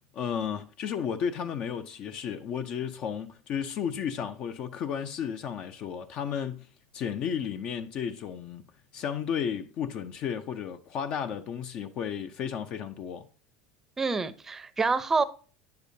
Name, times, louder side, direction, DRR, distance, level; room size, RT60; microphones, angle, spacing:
voice 1, 0.1-6.7 6.9-8.6 8.9-13.3, left 8 dB, 50° left, 0.6 m, -33 dB
voice 2, 14.0-15.2, right 4 dB, 15° right, 0.6 m, -27 dB
9.1 x 6.7 x 2.7 m
supercardioid pair, 120°, 2 cm